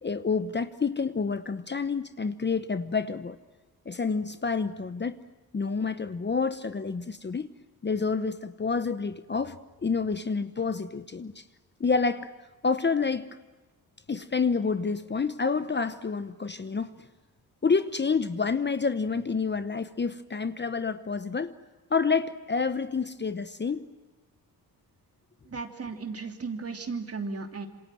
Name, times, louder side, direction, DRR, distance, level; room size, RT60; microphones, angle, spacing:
voice 1, 0.0-3.4 3.9-5.2 5.5-7.5 7.8-11.4 11.8-12.3 12.6-13.3 14.1-17.1 17.6-21.6 21.9-23.9, left 5 dB, 30° left, 0.9 m, -28 dB
voice 2, 25.5-27.7, right 4 dB, 40° right, 3.0 m, -35 dB
27.5 x 26.5 x 7.8 m
cardioid pair, 110°, 38 cm